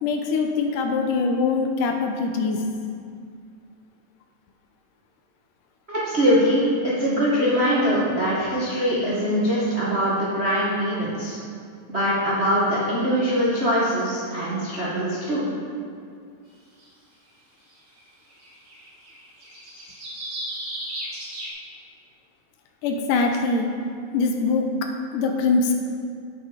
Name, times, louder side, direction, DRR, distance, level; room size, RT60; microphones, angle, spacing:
voice 1, 0.0-2.6 22.8-23.7 24.1-24.7 25.1-25.7, left 4 dB, 75° left, 3 dB, 2.2 m, -23 dB
voice 2, 5.9-11.4 11.9-15.5, equal, 70° right, -8 dB, 0.6 m, -22 dB
sound 1, 16.8-16.9 18.0-18.1 18.3-21.5, right 1 dB, 40° right, 2.1 m, -35 dB
9.0 x 7.9 x 5.0 m, 2.3 s
omnidirectional pair, 3.9 m